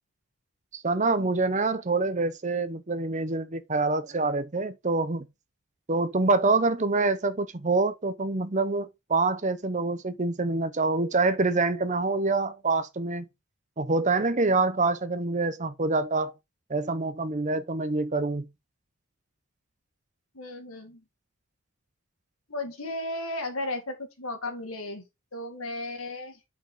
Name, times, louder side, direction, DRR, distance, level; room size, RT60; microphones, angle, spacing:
voice 1, 0.7-5.3 5.9-13.3 13.8-16.3 16.7-18.5, right 3 dB, 35° right, 0.8 m, -26 dB
voice 2, 20.3-21.0 22.5-25.0 25.3-26.4, left 2 dB, 85° left, 2.1 m, -35 dB
8.1 x 5.1 x 3.7 m
head